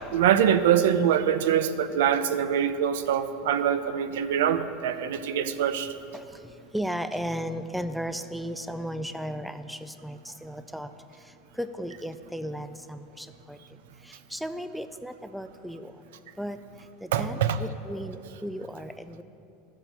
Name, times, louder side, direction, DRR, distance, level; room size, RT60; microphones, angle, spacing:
voice 1, 0.1-5.9 17.1-17.6, right 9 dB, 85° right, 12 dB, 0.6 m, -24 dB
voice 2, 6.7-10.9 11.6-13.6 14.1-15.9 16.4-16.6 17.0-19.2, equal, ahead, 10 dB, 0.3 m, -35 dB
12.5 x 7.5 x 6.7 m, 2.7 s
supercardioid pair, 165°, 0 cm